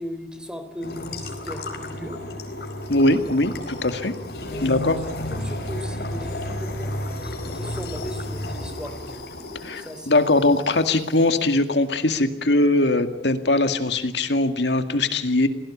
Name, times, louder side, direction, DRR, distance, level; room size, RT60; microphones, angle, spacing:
voice 1, 0.0-2.2 4.5-4.7 5.1-6.9 7.2-9.2 9.7-10.4, equal, 5° right, 8 dB, 3.4 m, -37 dB
sound 1, 0.8-11.2, left 1 dB, 60° left, 4.6 m, -33 dB
voice 2, 2.9-4.1 4.6-5.0 9.6-15.5, left 2 dB, 80° left, 8 dB, 2.1 m, -21 dB
28.5 x 18.5 x 8.6 m, 0.84 s
head